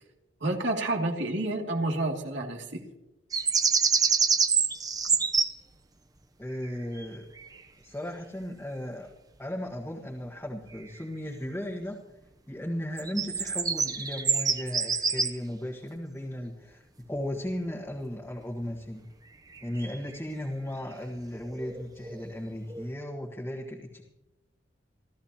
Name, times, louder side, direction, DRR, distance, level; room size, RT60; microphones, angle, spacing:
voice 1, 0.4-2.9, right 2 dB, 75° right, 1 dB, 2.6 m, -29 dB
sound 1, 3.3-5.5 6.6-7.0 7.4-7.6 10.8-11.0 13.0-15.3 19.5-20.2 21.5-22.4 22.7-22.9, right 5 dB, 20° right, 0.8 m, -26 dB
voice 2, 6.4-7.3 7.8-9.1 9.4-12.0 12.5-16.8 17.1-19.0 19.6-24.0, equal, 10° left, -3 dB, 1.6 m, -36 dB
27.5 x 14.0 x 2.9 m, 0.96 s
head